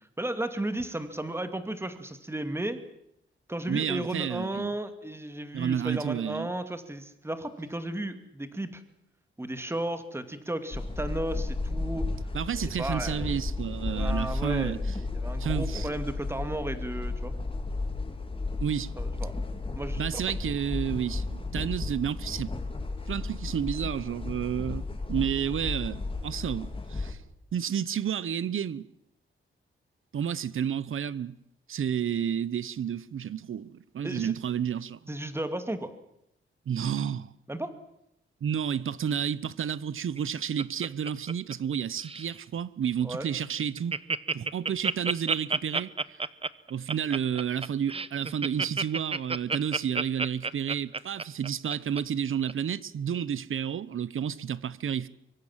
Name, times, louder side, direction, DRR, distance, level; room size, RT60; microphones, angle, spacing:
voice 1, 0.2-2.8 3.5-8.8 9.4-12.1 12.6-13.5 13.9-17.3 19.0-19.3 19.7-20.4 34.0-34.3 35.1-35.9 37.5-37.7 43.0-43.3, right 1 dB, 10° right, 2.5 m, -34 dB
voice 2, 3.7-4.7 5.5-6.5 12.3-14.8 15.4-15.9 18.6-18.9 20.0-22.5 23.1-27.2 27.5-28.8 30.1-31.3 31.7-35.0 36.7-37.3 38.4-43.9 44.3-45.9 46.7-55.1, right 8 dB, 75° right, 1.0 m, -31 dB
sound 1, 10.7-27.1, left 3 dB, 25° left, 3.2 m, -33 dB
Laughter, 40.0-41.7 42.0-42.4 42.8-42.9 43.2-43.3 43.6-52.0 52.5-52.6, right 4 dB, 25° right, 0.9 m, -30 dB
24.5 x 24.0 x 7.5 m
wide cardioid pair, 120°, 21 cm